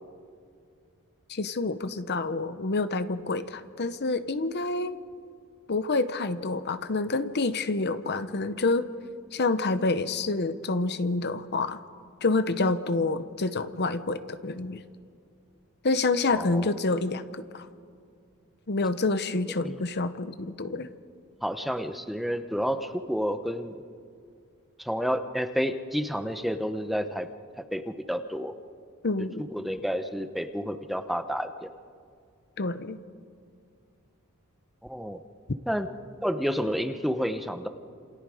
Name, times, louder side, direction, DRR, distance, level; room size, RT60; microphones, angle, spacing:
voice 1, 1.3-5.0 5.7-8.9 9.3-11.8 12.2-14.8 15.8-17.2 17.5-17.7 18.7-20.9 29.0-29.4 32.6-33.0, left 3 dB, 50° left, 12 dB, 0.9 m, -27 dB
voice 2, 16.4-16.7 19.6-19.8 21.4-23.8 24.8-27.3 27.7-27.8 28.1-28.5 29.5-31.7 34.8-35.2 35.7-35.9 36.2-37.7, equal, ahead, 8 dB, 0.8 m, -30 dB
28.5 x 28.0 x 5.0 m, 2.3 s
head